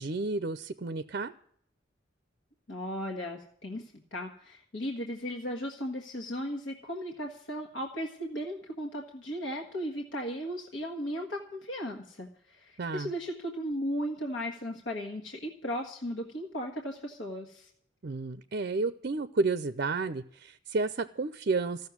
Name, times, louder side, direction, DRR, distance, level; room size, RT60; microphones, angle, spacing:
voice 1, 0.0-1.3 12.8-13.1 18.0-21.9, right 3 dB, 50° right, 13 dB, 0.5 m, -31 dB
voice 2, 2.7-17.7, equal, 65° left, 1 dB, 1.7 m, -36 dB
15.0 x 6.6 x 9.5 m, 0.66 s
head